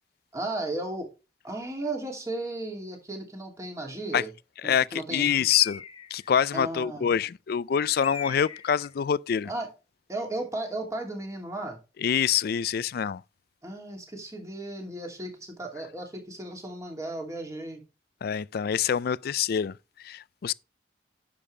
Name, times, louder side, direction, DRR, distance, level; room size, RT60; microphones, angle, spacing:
voice 1, 0.3-1.1 1.4-4.3 4.6-5.3 6.5-7.1 9.5-9.7 10.1-11.8 13.6-17.8, right 2 dB, 20° right, 2.6 m, -35 dB
voice 2, 4.6-5.8 6.1-9.5 12.0-13.2 18.2-19.7 20.0-20.5, left 8 dB, 60° left, 0.4 m, -26 dB
Bird, 5.5-6.3 8.0-8.9, left 6 dB, 30° left, 0.8 m, -40 dB
10.0 x 6.9 x 3.3 m
head